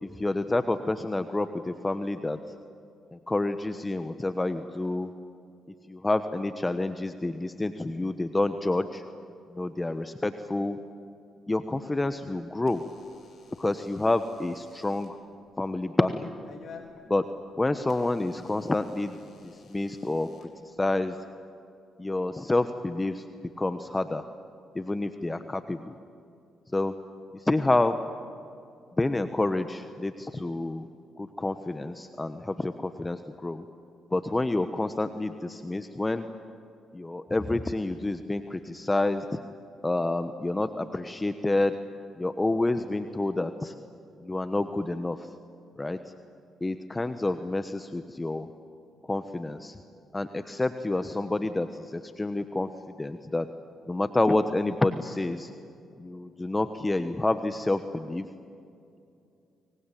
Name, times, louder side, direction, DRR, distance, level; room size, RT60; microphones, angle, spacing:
voice 1, 0.0-2.4 3.1-5.1 5.9-9.0 9.5-10.8 11.5-12.8 13.6-15.2 15.6-16.3 17.1-17.2 17.6-19.2 19.4-21.2 22.0-23.2 23.6-24.2 24.7-25.9 26.7-26.9 27.3-28.0 29.0-30.9 31.2-33.6 34.1-36.2 36.9-39.4 39.8-41.8 42.2-43.7 44.2-45.3 45.8-46.0 46.6-48.5 49.0-49.8 50.1-52.7 53.0-53.5 53.9-55.5 56.0-58.3, left 2 dB, 20° left, 9 dB, 1.2 m, -28 dB
Door / Alarm, 11.9-21.2, left 5 dB, 60° left, 4.1 m, -54 dB
25.0 x 23.5 x 9.3 m, 2.5 s
hypercardioid pair, 50°, 0 cm